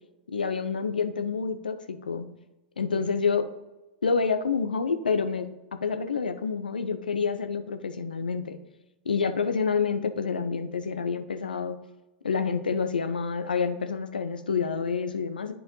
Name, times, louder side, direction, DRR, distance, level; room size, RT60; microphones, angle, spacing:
voice 1, 0.3-2.3 2.8-3.5 4.0-8.6 9.0-11.8 12.2-15.5, left 5 dB, 75° left, 9 dB, 0.7 m, -28 dB
10.5 x 4.9 x 3.2 m, 1.1 s
figure-of-eight pair, 100°, 5 cm